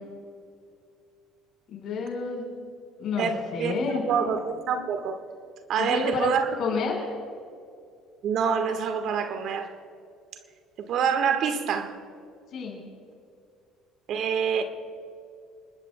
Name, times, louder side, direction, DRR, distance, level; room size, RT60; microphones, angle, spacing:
voice 1, 1.7-2.5 3.0-3.3 3.5-4.0 5.8-6.3 6.6-7.0 12.5-12.8, left 5 dB, 55° left, 0 dB, 5.0 m, -29 dB
voice 2, 3.2-5.2 5.7-6.5 8.2-9.7 10.8-12.0 14.1-14.6, right 7 dB, 60° right, 7 dB, 1.5 m, -26 dB
28.0 x 20.5 x 2.3 m, 2.4 s
hypercardioid pair, 65°, 0 cm